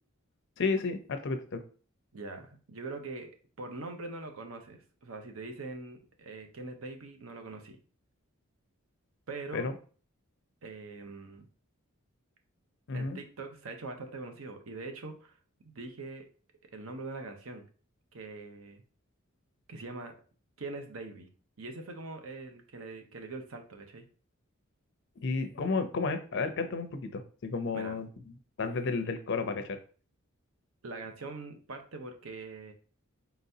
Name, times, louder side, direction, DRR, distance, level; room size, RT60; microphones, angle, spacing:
voice 1, 0.6-1.6 9.5-9.7 12.9-13.2 25.2-28.1 28.6-29.8, left 4 dB, 60° left, 8 dB, 0.5 m, -32 dB
voice 2, 2.1-3.3 3.6-7.8 9.3-9.7 10.6-11.5 12.9-15.3 15.6-16.3 16.7-17.6 18.1-18.8 19.7-20.1 20.6-21.3 21.6-24.1 27.7-28.0 30.8-32.7, right 3 dB, 70° right, 5 dB, 0.8 m, -42 dB
4.4 x 3.9 x 2.7 m, 0.40 s
head